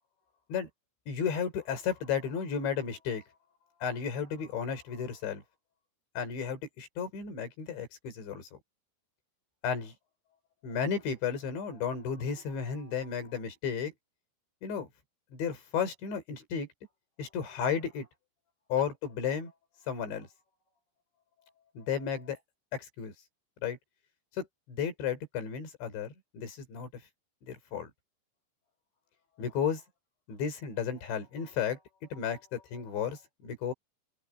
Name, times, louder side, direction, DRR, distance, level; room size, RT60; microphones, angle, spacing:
voice 1, 1.1-3.2 3.8-5.4 6.2-8.5 9.6-9.9 10.6-13.9 14.6-14.9 15.3-16.7 17.2-18.1 18.7-19.5 19.9-20.3 21.8-22.4 22.7-23.1 23.6-23.8 24.4-26.9 27.5-27.9 29.4-29.8 30.3-31.8 32.1-33.7, left 7 dB, 65° left, 7.1 m, -33 dB
open air
omnidirectional pair, 5.6 m